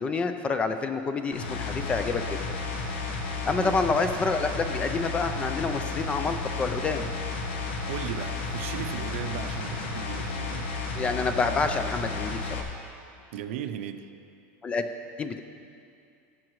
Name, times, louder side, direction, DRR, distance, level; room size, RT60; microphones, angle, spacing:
voice 1, 0.0-2.6 3.5-7.1 10.9-12.6 14.6-14.9 15.2-15.4, left 4 dB, 15° left, 8 dB, 0.4 m, -28 dB
sound 1, 1.3-12.6, left 4 dB, 90° left, 1.3 m, -32 dB
voice 2, 7.5-10.7 13.3-14.1, right 9 dB, 80° right, 9 dB, 0.6 m, -37 dB
16.5 x 7.3 x 3.1 m, 2.5 s
supercardioid pair, 160°, 7 cm